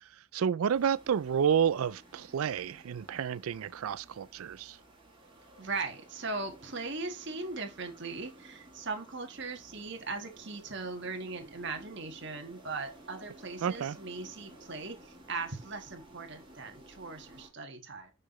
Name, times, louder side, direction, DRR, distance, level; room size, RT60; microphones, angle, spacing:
voice 1, 0.0-4.8 13.6-14.0, right 8 dB, 80° right, 0.4 m, -30 dB
sound 1, 0.7-17.5, right 1 dB, 25° right, 2.5 m, -55 dB
voice 2, 5.6-18.1, right 3 dB, 55° right, 1.5 m, -39 dB
6.5 x 5.7 x 3.1 m
head